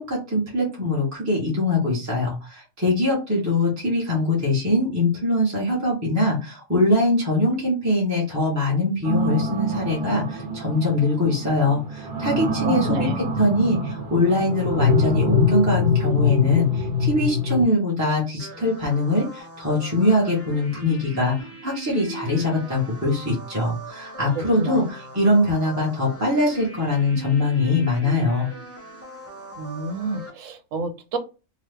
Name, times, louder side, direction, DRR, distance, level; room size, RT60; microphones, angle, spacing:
voice 1, 0.0-28.5, left 2 dB, 15° right, -5 dB, 0.8 m, -22 dB
sound 1, 9.0-17.6, left 2 dB, 45° right, 1.0 m, -24 dB
voice 2, 12.6-13.2 24.6-24.9 29.6-31.2, right 2 dB, 85° right, 8 dB, 1.0 m, -29 dB
sound 2, 18.4-30.3, right 1 dB, 15° left, 0.5 m, -39 dB
2.9 x 2.2 x 3.4 m, 0.30 s
omnidirectional pair, 1.3 m